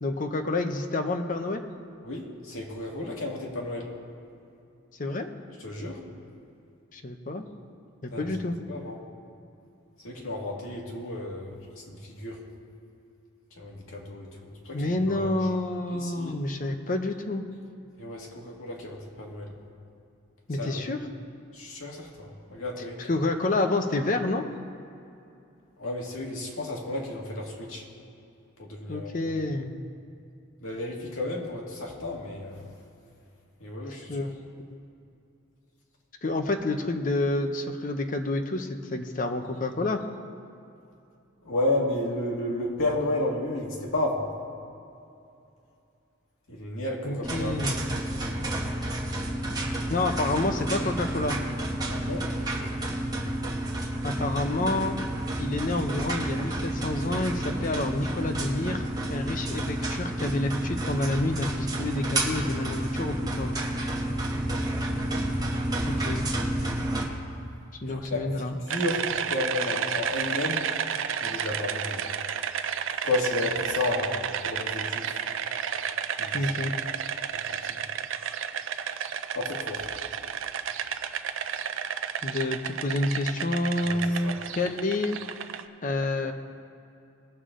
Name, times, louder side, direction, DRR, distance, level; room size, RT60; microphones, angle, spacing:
voice 1, 0.0-1.6 5.0-5.3 6.9-7.4 8.0-8.6 14.7-17.5 20.5-21.0 23.1-24.5 28.9-29.8 34.1-34.3 36.2-40.0 47.0-47.8 49.9-51.4 54.0-55.0 55.4-63.6 65.9-66.3 67.8-68.6 76.3-76.7 82.2-85.2 85.8-86.3, left 2 dB, 40° left, 5 dB, 0.8 m, -28 dB
voice 2, 2.0-3.9 5.6-6.0 8.1-8.3 8.7-9.0 10.0-12.4 13.6-15.4 15.9-16.4 18.0-19.5 20.5-20.9 21.5-23.1 25.8-27.8 28.6-29.2 30.6-32.7 33.6-34.3 41.4-44.3 46.5-47.6 51.9-52.3 65.8-65.9 67.9-70.7 71.2-72.0 73.0-75.2 76.2-76.7 77.3-77.8 79.3-79.9 83.8-84.4, left 2 dB, 75° left, -2 dB, 2.0 m, -32 dB
sound 1, 47.2-67.0, right 1 dB, 20° right, 1.1 m, -30 dB
sound 2, 68.7-85.6, right 8 dB, 65° right, 0.5 m, -32 dB
19.5 x 6.8 x 3.8 m, 2.7 s
head